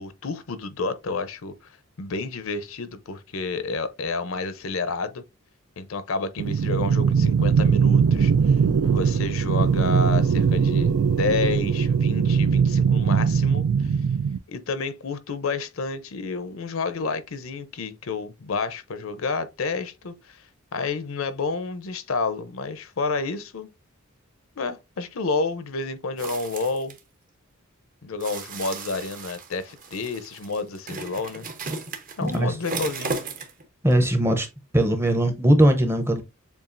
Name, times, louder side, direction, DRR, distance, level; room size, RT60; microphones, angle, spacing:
voice 1, 0.0-5.2 5.8-8.6 8.8-13.9 14.5-20.5 20.7-23.7 24.6-26.9 28.0-31.5 32.2-33.2, left 4 dB, 70° left, 0.6 m, -30 dB
sound 1, 6.4-14.4, right 6 dB, 85° right, 0.4 m, -20 dB
sound 2, 26.2-27.0 28.2-33.6 33.9-34.0, right 3 dB, 40° right, 0.8 m, -35 dB
voice 2, 32.2-32.5 33.8-34.5 34.7-36.2, right 1 dB, 10° right, 0.6 m, -20 dB
7.0 x 2.4 x 2.5 m
head